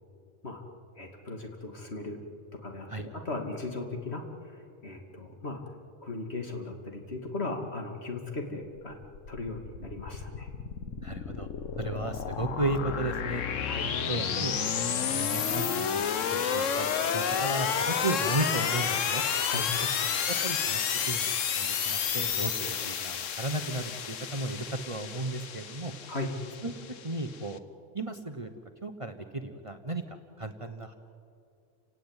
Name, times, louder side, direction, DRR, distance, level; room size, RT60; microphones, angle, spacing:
voice 1, 1.0-2.2 2.6-5.6 6.0-8.9 9.3-10.5 13.7-13.9 19.4-19.7 26.1-26.3, left 2 dB, 55° left, 2 dB, 2.9 m, -37 dB
sound 1, 8.8-27.5, left 7 dB, 80° left, 1.4 m, -31 dB
voice 2, 11.0-11.5 11.8-13.4 14.1-19.2 20.3-20.8 21.1-21.3 21.6-25.9 26.6-27.6 27.9-28.5 28.8-30.9, right 2 dB, 25° right, 6 dB, 1.2 m, -34 dB
30.0 x 18.0 x 9.1 m, 2.4 s
omnidirectional pair, 1.3 m